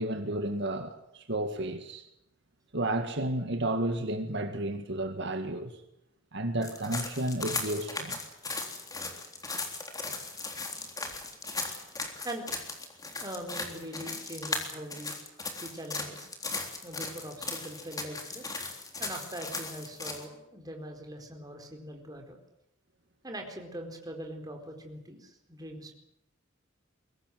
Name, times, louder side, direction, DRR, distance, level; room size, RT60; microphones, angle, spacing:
voice 1, 0.0-2.1 2.7-5.7 6.3-8.2, right 1 dB, 60° right, 1.9 m, -32 dB
sound 1, 6.6-20.3, left 3 dB, 20° left, 3.6 m, -37 dB
voice 2, 12.2-12.6 13.2-15.1 15.5-16.3 16.8-18.5 19.0-22.4 23.2-25.9, right 1 dB, 20° right, 4.5 m, -42 dB
23.0 x 18.0 x 9.4 m
head